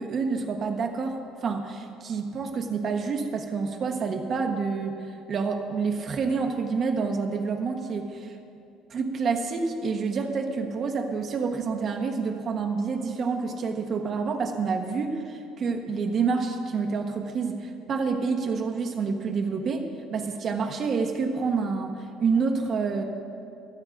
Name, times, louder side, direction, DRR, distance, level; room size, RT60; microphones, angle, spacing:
voice 1, 0.0-8.4 8.9-23.0, right 5 dB, 35° right, 4 dB, 1.1 m, -28 dB
27.0 x 9.6 x 2.6 m, 2.7 s
cardioid pair, 155°, 0 cm